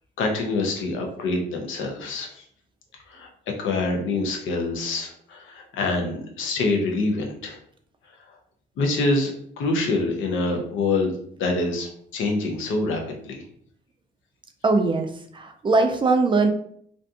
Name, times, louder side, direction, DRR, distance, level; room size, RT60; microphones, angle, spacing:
voice 1, 0.2-2.4 3.1-3.3 3.6-7.6 8.8-11.1 11.4-13.4, left 2 dB, 80° left, 2 dB, 0.6 m, -26 dB
voice 2, 14.6-16.5, right 3 dB, 25° right, 6 dB, 0.4 m, -21 dB
2.5 x 2.3 x 2.6 m, 0.64 s
cardioid pair, 90°, 20 cm